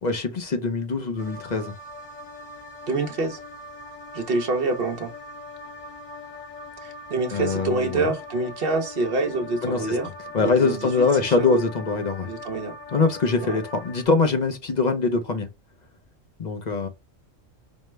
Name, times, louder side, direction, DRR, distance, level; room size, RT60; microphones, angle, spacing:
voice 1, 0.0-1.7 7.3-8.1 9.6-12.3 12.9-15.5 16.4-16.9, left 4 dB, 45° left, 0.6 m, -23 dB
sound 1, 1.2-14.1, left 2 dB, 85° left, 1.4 m, -41 dB
voice 2, 2.9-3.4 4.1-5.1 6.8-10.1 10.4-11.6 12.2-12.8 13.4-13.6, right 3 dB, 50° right, 1.0 m, -26 dB
5.3 x 2.1 x 3.2 m
omnidirectional pair, 1.3 m